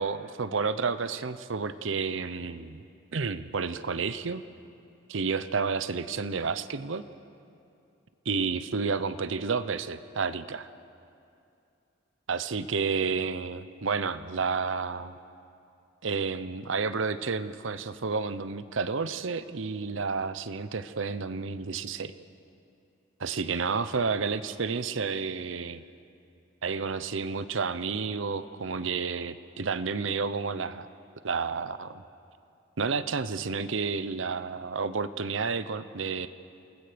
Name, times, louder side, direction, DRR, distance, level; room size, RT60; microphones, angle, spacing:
voice 1, 0.0-2.8 3.1-4.4 5.1-7.0 8.3-10.7 12.3-15.2 16.0-22.1 23.2-25.8 26.6-30.9 31.2-32.0 32.8-36.3, right 5 dB, 70° right, 13 dB, 0.8 m, -30 dB
28.5 x 19.5 x 5.2 m, 2.6 s
head